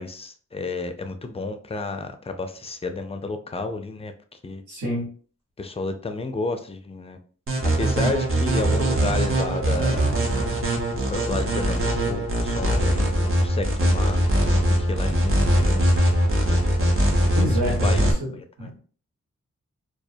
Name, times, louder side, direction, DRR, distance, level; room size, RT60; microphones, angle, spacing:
voice 1, 0.0-4.6 5.6-7.2 7.8-10.0 11.1-17.0 17.5-18.1 18.6-18.7, left 3 dB, 20° left, 7 dB, 0.4 m, -32 dB
voice 2, 4.7-5.1 17.3-18.3 18.6-18.8, equal, 80° right, -4 dB, 1.2 m, -27 dB
sound 1, 7.5-18.1, right 1 dB, 45° right, 0.7 m, -21 dB
2.2 x 2.1 x 2.7 m, 0.42 s
cardioid pair, 50°, 29 cm